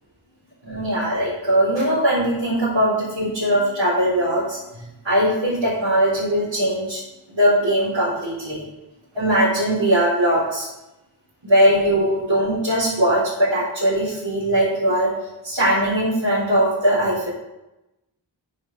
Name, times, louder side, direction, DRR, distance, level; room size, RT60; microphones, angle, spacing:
voice 1, 0.6-7.0 7.3-8.6 9.1-10.7 11.4-15.1 15.4-17.3, right 1 dB, 70° right, -11 dB, 3.7 m, -20 dB
9.3 x 5.5 x 5.1 m, 0.95 s
wide cardioid pair, 50°, 47 cm